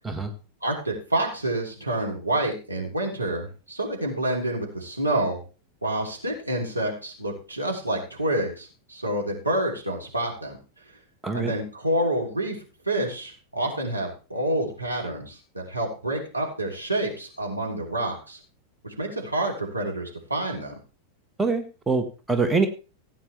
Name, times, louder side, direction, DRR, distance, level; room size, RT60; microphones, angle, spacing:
voice 1, 0.6-5.4 5.8-10.6 11.3-12.6 12.8-18.4 18.8-20.7, right 1 dB, 85° right, -1 dB, 3.2 m, -28 dB
voice 2, 21.4-22.7, right 4 dB, 10° right, 6 dB, 1.6 m, -24 dB
16.0 x 9.2 x 3.4 m, 0.34 s
figure-of-eight pair, 90°, 0 cm